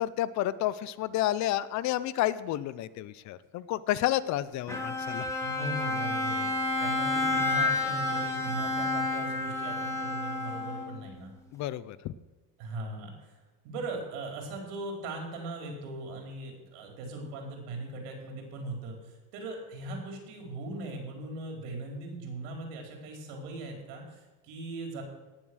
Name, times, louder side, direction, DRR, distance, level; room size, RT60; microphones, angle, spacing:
voice 1, 0.0-5.3 11.5-12.1, left 13 dB, 45° left, 17 dB, 0.6 m, -30 dB
Bowed string instrument, 4.7-11.1, left 2 dB, 5° left, 2.2 m, -30 dB
voice 2, 5.4-6.5 6.8-11.3 12.6-13.3 13.6-25.0, right 2 dB, 80° right, 2 dB, 4.7 m, -39 dB
18.5 x 7.4 x 6.3 m, 1.3 s
cardioid pair, 155°, 40 cm